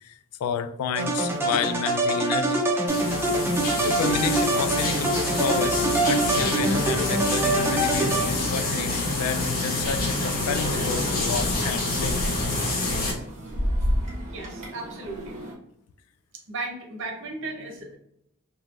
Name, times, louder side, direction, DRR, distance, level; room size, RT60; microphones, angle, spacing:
voice 1, 0.0-2.6 3.8-12.2, left 6 dB, 80° left, 14 dB, 0.3 m, -30 dB
sound 1, 0.9-8.7, right 2 dB, 10° right, 0.5 m, -25 dB
sound 2, 2.9-13.1, left 2 dB, 45° left, 0.7 m, -27 dB
sound 3, 9.8-15.5, equal, 35° right, 0.9 m, -32 dB
voice 2, 14.3-15.4 16.5-18.0, right 2 dB, 60° right, 2 dB, 0.7 m, -35 dB
3.0 x 2.6 x 2.4 m, 0.76 s
head